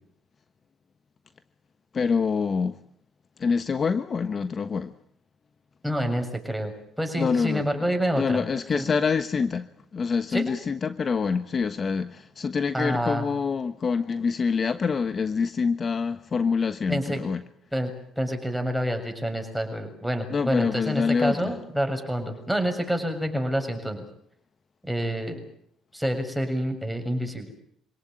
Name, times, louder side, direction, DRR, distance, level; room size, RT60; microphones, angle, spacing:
voice 1, 1.9-2.8 3.4-4.9 7.2-7.7 8.1-17.4 20.3-21.6, left 5 dB, 40° left, 1.2 m, -26 dB
voice 2, 5.8-8.4 8.7-8.8 10.3-10.6 12.7-13.3 16.9-17.2 17.7-24.0 24.8-25.4 25.9-27.5, equal, ahead, 6.9 m, -28 dB
26.0 x 17.5 x 9.3 m
cardioid pair, 85°, 0 cm